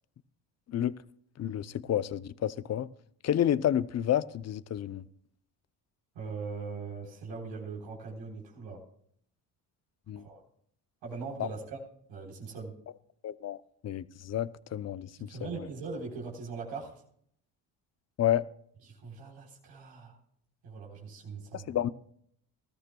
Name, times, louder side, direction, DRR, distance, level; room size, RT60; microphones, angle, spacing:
voice 1, 1.4-2.9 3.2-5.0 10.1-10.3 11.4-11.5 13.2-13.6 13.8-15.7 18.2-18.5 21.5-21.9, left 11 dB, 35° left, 0.6 m, -30 dB
voice 2, 6.1-8.8 10.2-10.4 11.0-11.8 12.1-12.7 15.2-17.0 18.9-20.2 20.6-21.7, right 4 dB, 80° right, 4.0 m, -41 dB
20.0 x 13.5 x 2.3 m
supercardioid pair, 75°, 44 cm